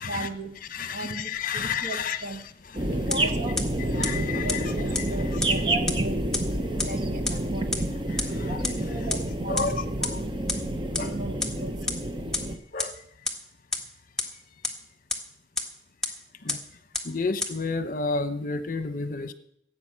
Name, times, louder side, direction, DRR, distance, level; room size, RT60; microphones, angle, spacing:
voice 1, 0.0-0.5 0.9-2.4 2.8-7.9 8.3-9.8 10.0-10.5 10.9-11.9, right 2 dB, 50° right, 6 dB, 1.6 m, -37 dB
voice 2, 0.7-2.3 2.7-2.9 3.8-4.7 5.2-5.4 8.1-8.6 9.0-9.1 9.5-10.2 10.9-11.1 12.7-13.0 14.3-14.4 16.4-19.3, left 4 dB, 50° left, 11 dB, 1.0 m, -32 dB
sound 1, 2.7-12.6, right 1 dB, 25° right, 1.0 m, -28 dB
sound 2, 3.1-3.2 3.6-3.7 4.0-4.1 4.5-4.6 4.9-5.0 5.4-5.5 5.9-6.0 6.3-6.4 6.8-6.9 7.3-7.4 7.7-7.8 8.2-8.3 8.6-8.7 9.1-9.2 9.6-9.7 10.0-10.1 10.5-10.6 10.9-11.0 11.4-11.5 11.9-12.0 12.3-12.4 12.8-12.9 13.3-13.4 13.7-13.8 14.2-14.3 14.6-14.7 15.1-15.2 15.6-15.7 16.0-16.1 16.5-16.6 16.9-17.0 17.4-17.5, left 3 dB, 5° left, 1.5 m, -26 dB
15.5 x 8.7 x 7.5 m, 0.69 s
head